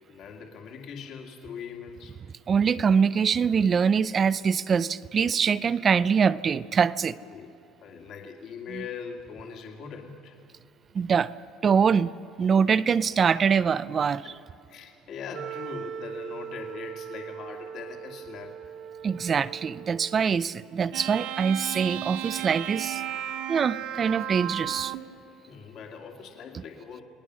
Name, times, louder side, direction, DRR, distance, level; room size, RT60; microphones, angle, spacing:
voice 1, 0.0-2.2 7.3-7.5 7.8-10.4 14.2-14.4 14.7-18.6 25.5-27.0, left 6 dB, 50° left, 2 dB, 2.3 m, -41 dB
voice 2, 2.5-7.2 8.7-8.8 10.9-11.3 11.6-12.1 12.4-14.3 19.0-23.0 23.5-24.9, right 6 dB, 30° right, 16 dB, 0.4 m, -24 dB
Wind instrument woodwind instrument, 15.3-20.4, right 8 dB, 50° right, 0.9 m, -40 dB
sound 1, 20.9-25.1, right 12 dB, 90° right, 1.7 m, -34 dB
29.5 x 20.0 x 6.3 m, 2.7 s
cardioid pair, 150°, 0 cm